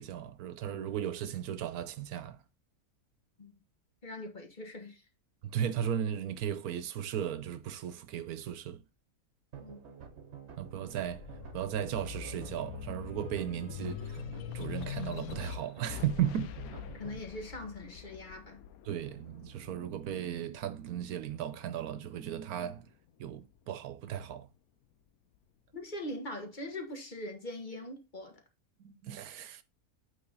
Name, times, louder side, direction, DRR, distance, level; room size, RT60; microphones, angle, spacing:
voice 1, 0.0-2.4 5.4-8.8 10.6-11.2 11.5-14.2 14.5-16.5 18.9-22.9 23.2-24.5 28.8-29.6, right 10 dB, 85° right, 1.2 m, -36 dB
voice 2, 4.0-5.0 9.6-9.9 17.0-18.6 25.7-28.4, left 1 dB, 35° left, 1.4 m, -42 dB
sound 1, 9.5-17.2, right 7 dB, 50° right, 1.3 m, -49 dB
sound 2, 10.3-21.1 21.6-22.8, left 10 dB, 80° left, 1.1 m, -44 dB
8.6 x 3.7 x 4.0 m
omnidirectional pair, 1.6 m